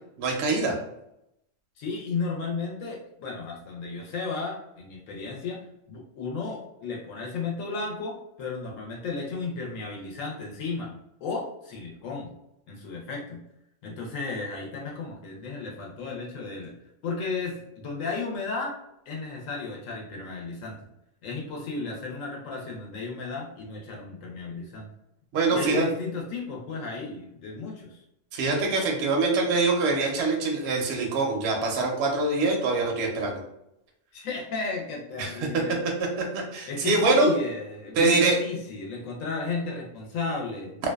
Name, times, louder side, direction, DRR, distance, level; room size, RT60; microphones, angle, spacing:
voice 1, 0.2-0.8 25.3-25.9 28.3-33.4 35.2-35.3 35.7-35.8 36.2-37.3 38.0-38.4, right 3 dB, 65° right, 0 dB, 0.7 m, -24 dB
voice 2, 1.8-5.6 5.9-10.9 11.2-12.3 12.7-13.4 13.8-16.7 17.0-18.8 19.1-20.7 21.2-24.9 25.5-28.0 34.1-35.8 36.7-40.8, left 4 dB, 80° left, -1 dB, 1.0 m, -34 dB
2.5 x 2.2 x 2.2 m, 0.80 s
omnidirectional pair, 1.3 m